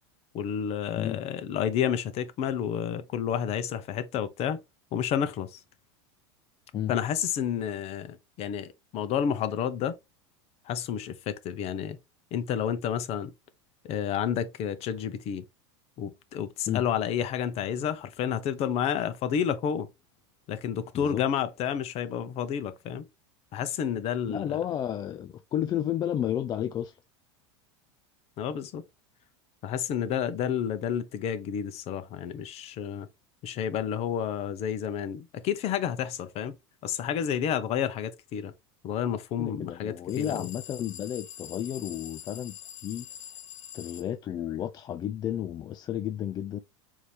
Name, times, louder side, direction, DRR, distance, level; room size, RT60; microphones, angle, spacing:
voice 1, 0.3-4.6 4.9-5.6 6.9-9.9 10.7-12.0 12.3-13.3 13.8-15.4 16.0-19.9 20.5-23.1 23.5-24.6 28.4-28.8 29.6-33.1 33.4-36.6 36.8-38.5 38.8-40.5, left 8 dB, 45° left, 0.7 m, -30 dB
voice 2, 24.3-27.0 39.4-43.1 43.7-46.6, left 10 dB, 30° left, 0.3 m, -32 dB
sound 1, 40.1-44.1, left 10 dB, 85° left, 0.5 m, -44 dB
4.6 x 2.8 x 3.3 m
supercardioid pair, 115°, 15 cm